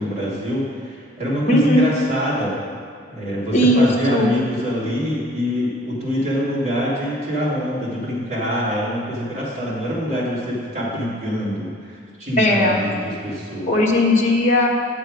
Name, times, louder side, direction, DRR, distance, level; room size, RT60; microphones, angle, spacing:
voice 1, 0.0-2.6 3.1-13.8, equal, 35° right, -9 dB, 2.7 m, -25 dB
voice 2, 1.5-1.9 3.5-4.3 12.4-12.8 13.7-14.7, left 1 dB, 35° left, -2 dB, 1.3 m, -17 dB
8.2 x 7.7 x 5.2 m, 2.2 s
head